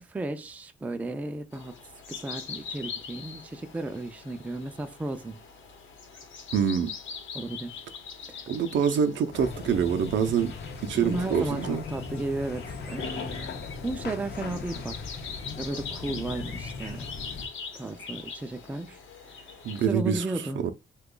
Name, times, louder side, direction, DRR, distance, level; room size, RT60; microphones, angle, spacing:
voice 1, 0.0-1.8 2.1-5.4 7.3-7.9 8.3-8.4 11.0-15.0 15.6-17.1 17.7-19.0 19.9-20.6, right 2 dB, 10° right, 0.3 m, -34 dB
sound 1, 1.5-19.9, left 6 dB, 80° left, 0.9 m, -43 dB
voice 2, 6.5-6.9 8.5-10.5 10.8-11.8 19.6-20.2 20.6-20.7, right 7 dB, 70° right, 0.5 m, -25 dB
sound 2, 9.3-17.5, left 4 dB, 55° left, 0.6 m, -38 dB
2.9 x 2.3 x 3.7 m
cardioid pair, 140°, 20 cm